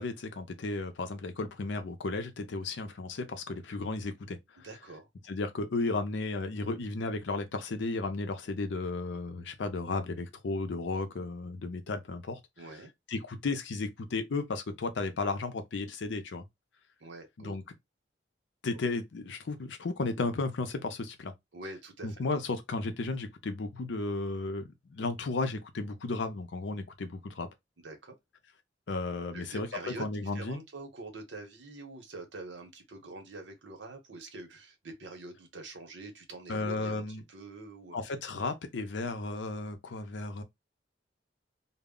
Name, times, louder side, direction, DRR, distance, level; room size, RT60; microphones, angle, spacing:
voice 1, 0.0-4.7 5.3-12.4 13.1-16.4 17.4-17.6 18.6-21.3 22.0-27.5 28.9-30.6 36.5-37.2 37.9-40.4, left 3 dB, 80° left, 0.5 m, -34 dB
voice 2, 4.6-5.1 12.6-12.9 17.0-17.6 21.5-22.1 27.8-28.2 29.3-38.0, right 2 dB, 85° right, 0.8 m, -45 dB
2.0 x 2.0 x 3.6 m
head